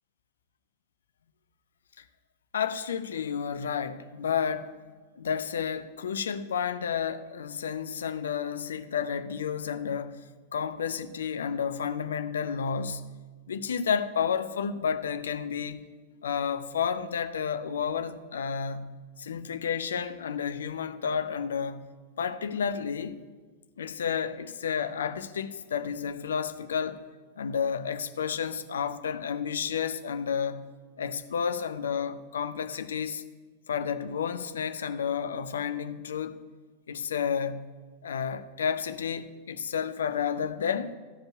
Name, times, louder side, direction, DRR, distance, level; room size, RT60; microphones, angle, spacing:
voice 1, 2.5-4.8 5.2-10.2 10.5-13.1 13.5-15.9 16.2-21.9 22.2-23.2 23.8-27.0 27.4-30.7 31.0-33.2 33.7-36.4 36.9-37.7 38.0-40.9, left 7 dB, 65° left, 0.6 m, -31 dB
14.5 x 5.3 x 9.3 m
figure-of-eight pair, 90°, 0 cm